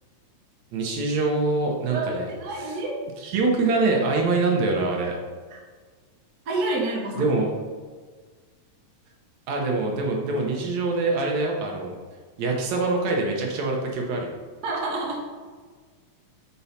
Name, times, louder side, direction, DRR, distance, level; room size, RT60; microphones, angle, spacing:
voice 1, 0.7-2.3 2.6-2.8 3.2-5.2 7.2-7.5 9.5-12.0 12.4-14.3, right 3 dB, 70° right, 0 dB, 2.2 m, -24 dB
voice 2, 1.9-3.0 4.1-4.2 6.4-7.3 14.6-15.2, right 2 dB, 50° right, -3 dB, 1.2 m, -28 dB
7.1 x 4.6 x 4.2 m, 1.5 s
omnidirectional pair, 3.6 m